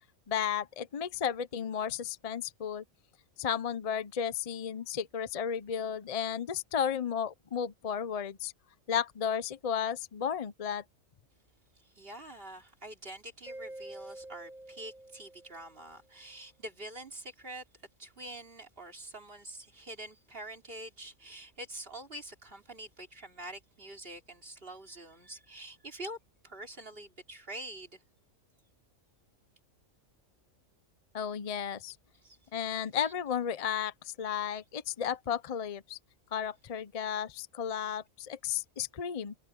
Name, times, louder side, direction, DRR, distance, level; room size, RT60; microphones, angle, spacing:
voice 1, 0.3-2.8 3.4-8.5 8.9-10.8 31.1-32.0 32.5-36.0 36.3-39.3, left 8 dB, 40° left, 0.6 m, -33 dB
voice 2, 11.7-17.6 18.0-26.2 26.4-28.0 32.2-32.4 32.9-33.1, right 1 dB, 45° right, 3.5 m, -46 dB
Mallet percussion, 13.5-16.0, right 1 dB, 5° right, 0.3 m, -47 dB
omnidirectional pair, 1.4 m